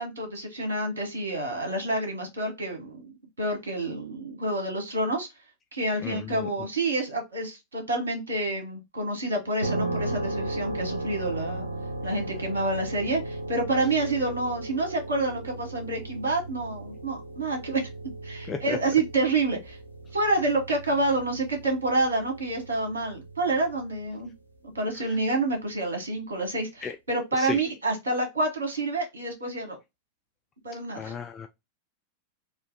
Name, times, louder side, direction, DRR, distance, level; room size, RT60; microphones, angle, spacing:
voice 1, 0.0-3.1 3.4-5.3 5.7-11.7 12.0-17.9 18.2-19.8 20.1-24.3 24.7-29.8 30.6-31.2, right 2 dB, 70° right, 1.3 m, -28 dB
voice 2, 6.0-6.5 18.5-18.8 25.1-25.2 26.8-27.0 27.4-27.6 30.9-31.5, left 6 dB, 20° left, 0.4 m, -34 dB
sound 1, 9.6-24.3, right 2 dB, 85° right, 0.6 m, -36 dB
3.2 x 2.6 x 3.7 m
figure-of-eight pair, 90°, 0 cm